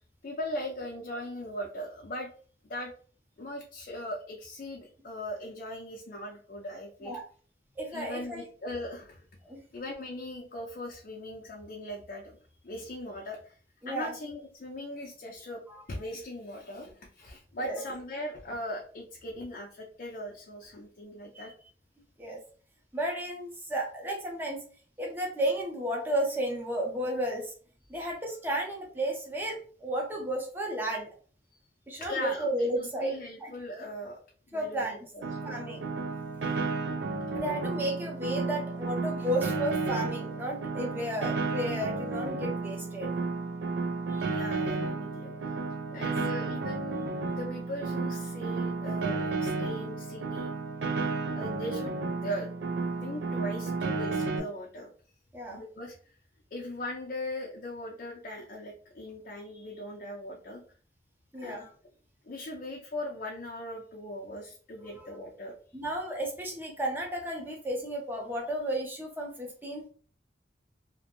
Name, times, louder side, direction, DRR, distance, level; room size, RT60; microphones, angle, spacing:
voice 1, 0.2-2.3 2.6-2.9 3.4-7.2 7.9-9.2 9.7-12.4 12.6-13.5 13.9-15.6 15.9-21.5 32.0-34.2 34.5-35.6 44.3-45.5 45.9-50.5 51.3-52.5 53.0-54.9 55.5-56.0 56.5-60.6 61.4-61.7 62.2-65.5, left 1 dB, 50° left, -1 dB, 0.4 m, -39 dB
voice 2, 7.8-8.4 9.4-9.6 13.8-14.1 15.7-15.8 17.6-17.8 21.3-21.5 22.2-22.4 22.9-24.6 25.0-27.5 27.9-31.1 31.9-33.5 34.5-35.0 35.4-35.8 37.3-43.1 44.1-44.3 45.9-46.0 55.3-55.6 61.3-61.6 64.8-65.1 65.7-69.9, right 1 dB, 10° right, -1 dB, 0.6 m, -33 dB
Piano, 35.2-54.4, right 3 dB, 85° right, 0.4 m, -32 dB
2.5 x 2.1 x 2.9 m, 0.43 s
head